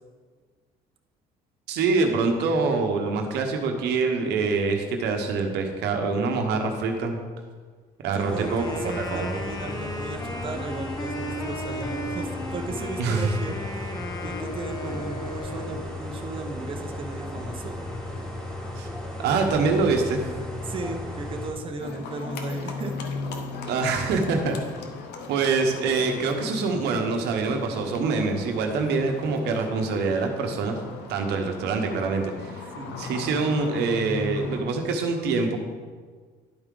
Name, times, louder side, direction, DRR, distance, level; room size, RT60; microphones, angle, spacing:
voice 1, 1.7-7.2 8.0-8.8 9.1-9.3 13.0-13.3 18.8-18.9 19.2-20.3 23.7-24.6 25.3-30.8 31.1-32.7 33.0-35.6, right 4 dB, 80° right, 4 dB, 1.0 m, -25 dB
sound 1, 8.2-21.5, left 1 dB, 5° left, 1.5 m, -35 dB
voice 2, 8.2-13.9 14.2-17.8 20.6-22.9 23.6-23.7 32.7-33.0, right 3 dB, 30° right, 2 dB, 0.8 m, -36 dB
Wind instrument woodwind instrument, 8.3-16.1, left 1 dB, 20° left, 0.7 m, -36 dB
Livestock farm animals working animals, 21.8-34.6, left 4 dB, 85° left, 0.8 m, -37 dB
11.0 x 4.6 x 3.8 m, 1.5 s
cardioid pair, 110°, 17 cm